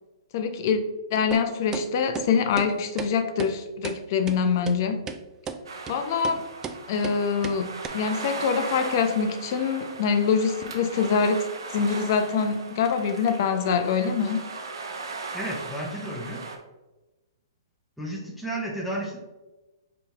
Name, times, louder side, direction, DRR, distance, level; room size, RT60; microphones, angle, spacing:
voice 1, 0.3-0.8 1.1-5.0 5.9-6.4 6.9-11.4 11.7-14.4, left 6 dB, 50° left, 8 dB, 0.6 m, -24 dB
sound 1, 1.3-1.4 1.7-1.9 2.2-2.3 2.6-2.7 3.0-3.1 3.4-3.5 3.8-4.0 4.3-4.4 4.7-4.8 5.1-5.2 5.5-5.6 5.9-6.0 6.2-6.4 6.6-6.8 7.0-7.2 7.4-7.6 7.8-7.9, right 6 dB, 20° right, 0.4 m, -33 dB
sound 2, 5.7-16.6, right 3 dB, 80° right, 0.8 m, -38 dB
voice 2, 15.3-16.4 18.0-19.2, right 1 dB, ahead, -4 dB, 0.9 m, -32 dB
5.1 x 3.0 x 3.5 m, 1.1 s
hypercardioid pair, 130°, 2 cm